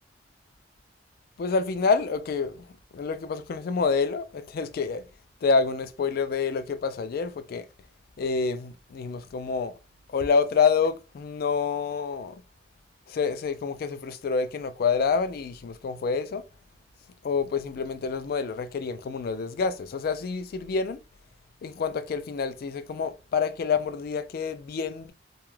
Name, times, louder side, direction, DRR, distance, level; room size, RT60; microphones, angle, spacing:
voice 1, 1.4-2.5 2.9-5.0 5.4-7.6 8.2-9.7 10.1-12.3 13.1-16.4 17.2-21.0 21.6-25.1, left 5 dB, 55° left, 0.3 m, -27 dB
2.3 x 2.1 x 3.1 m
head